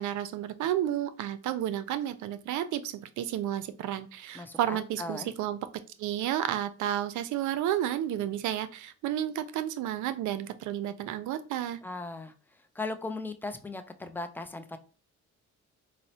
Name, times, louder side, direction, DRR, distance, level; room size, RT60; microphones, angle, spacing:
voice 1, 0.0-5.6 6.0-11.8, right 11 dB, 75° right, 12 dB, 0.5 m, -31 dB
voice 2, 4.3-5.3 11.8-12.3 12.8-14.8, left 3 dB, 5° left, 8 dB, 0.3 m, -37 dB
4.0 x 2.0 x 2.7 m, 0.36 s
cardioid pair, 90°, 30 cm